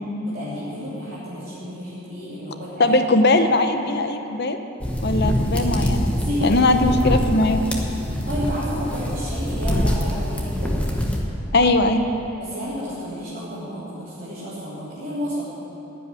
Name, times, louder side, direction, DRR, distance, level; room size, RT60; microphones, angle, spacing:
voice 1, 0.2-3.0 6.1-6.8 8.2-10.8 12.4-15.6, equal, 45° right, -12 dB, 3.2 m, -31 dB
voice 2, 2.8-4.6 5.0-6.1 6.4-7.6 11.5-12.1, left 2 dB, 55° left, 7 dB, 0.8 m, -19 dB
sound 1, 4.8-11.2, equal, 5° left, 1.2 m, -24 dB
15.0 x 5.5 x 9.7 m, 2.9 s
head